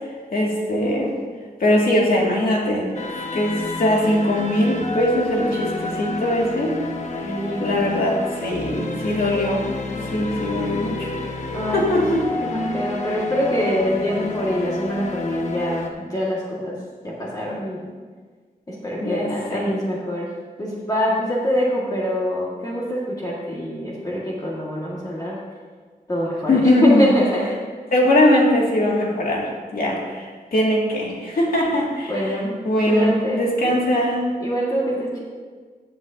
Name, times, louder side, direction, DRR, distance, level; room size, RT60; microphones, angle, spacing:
voice 1, 0.3-1.1 1.6-2.9 3.1-6.8 7.6-9.7 10.1-11.1 11.7-12.2 19.0-19.7 26.5-27.2 27.9-29.5 29.7-32.1 32.6-34.3, left 1 dB, 70° left, -3 dB, 2.2 m, -20 dB
sound 1, 2.9-15.9, left 2 dB, 50° left, 1.1 m, -30 dB
voice 2, 7.2-7.9 11.5-12.1 12.4-16.8 17.0-17.8 18.7-20.3 20.6-25.4 26.1-27.6 32.1-32.5 32.9-33.4 34.4-35.2, equal, 25° left, -6 dB, 1.8 m, -24 dB
15.5 x 8.0 x 2.7 m, 1.5 s
wide cardioid pair, 115°, 16 cm